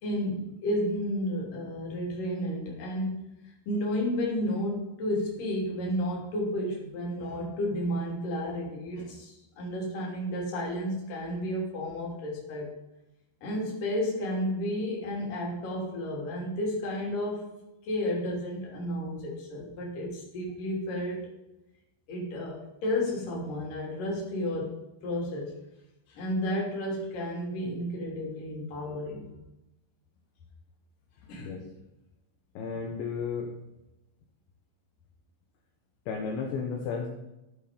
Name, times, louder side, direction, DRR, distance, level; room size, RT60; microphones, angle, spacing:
voice 1, 0.0-3.3 3.7-12.7 13.4-17.6 17.8-21.3 22.1-24.7 25.0-25.6 26.1-29.3 31.3-31.6, left 1 dB, 50° left, -2 dB, 4.3 m, -32 dB
voice 2, 32.5-33.5 36.1-37.1, left 5 dB, 75° left, 1 dB, 3.4 m, -33 dB
13.5 x 7.7 x 5.2 m, 0.93 s
omnidirectional pair, 5.6 m